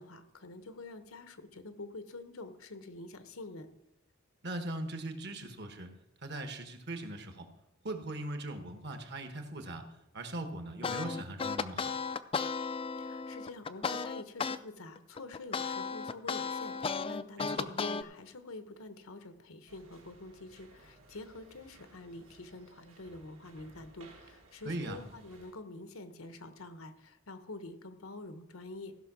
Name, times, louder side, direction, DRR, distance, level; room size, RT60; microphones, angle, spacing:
voice 1, 0.0-3.7 13.0-28.9, left 2 dB, 85° left, 10 dB, 1.0 m, -47 dB
voice 2, 4.4-5.9 6.2-7.5 7.8-9.9 10.1-11.9 17.4-17.7 24.6-25.0, right 1 dB, 55° right, 7 dB, 1.3 m, -40 dB
sound 1, 10.8-14.6 15.0-18.0, left 5 dB, 25° left, 0.3 m, -34 dB
sound 2, 19.7-25.5, right 2 dB, 75° right, 2.5 m, -59 dB
15.5 x 5.7 x 6.0 m, 0.85 s
head